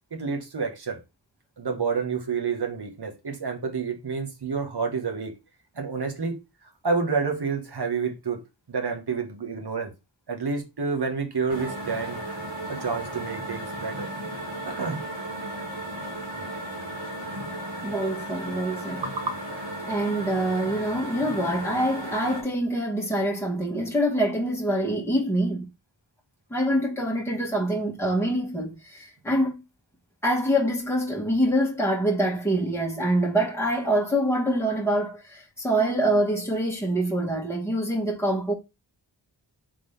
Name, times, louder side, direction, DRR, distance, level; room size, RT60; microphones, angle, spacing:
voice 1, 0.1-1.0 1.6-5.4 5.7-8.4 8.7-9.9 10.3-12.2 12.7-14.1 14.6-15.0 16.3-16.5 19.0-19.4, right 5 dB, 60° right, 1.2 m, -29 dB
sound 1, 11.5-22.4, right 1 dB, 90° right, 1.5 m, -35 dB
voice 2, 17.8-19.0 19.9-25.7 26.5-29.6 30.2-38.5, right 1 dB, 5° left, 1.3 m, -25 dB
3.7 x 3.7 x 3.2 m
wide cardioid pair, 65°, 44 cm